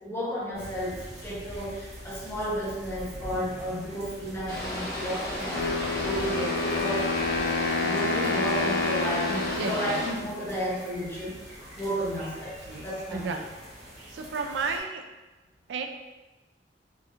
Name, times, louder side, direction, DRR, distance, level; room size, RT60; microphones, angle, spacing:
voice 1, 0.0-7.1 7.8-11.4 11.7-13.3, equal, 15° left, -6 dB, 0.8 m, -33 dB
sound 1, 0.5-14.8, equal, 40° right, 0.8 m, -44 dB
sound 2, 4.5-10.1, left 1 dB, 60° left, 0.9 m, -33 dB
Wind instrument woodwind instrument, 5.5-10.5, left 3 dB, 85° left, 0.4 m, -29 dB
voice 2, 9.6-10.3 12.6-12.9 13.1-13.5 14.1-15.0 15.7-15.9, right 4 dB, 80° right, 5 dB, 0.3 m, -33 dB
4.0 x 2.4 x 2.5 m, 1.1 s
head